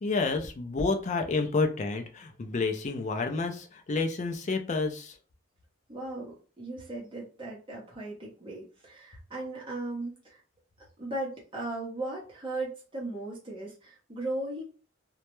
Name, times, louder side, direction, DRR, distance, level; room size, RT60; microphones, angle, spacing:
voice 1, 0.0-5.1, left 3 dB, 35° left, 5 dB, 0.4 m, -29 dB
voice 2, 5.9-10.4 11.0-14.6, right 2 dB, 25° right, -4 dB, 0.7 m, -37 dB
2.2 x 2.0 x 2.9 m, 0.36 s
head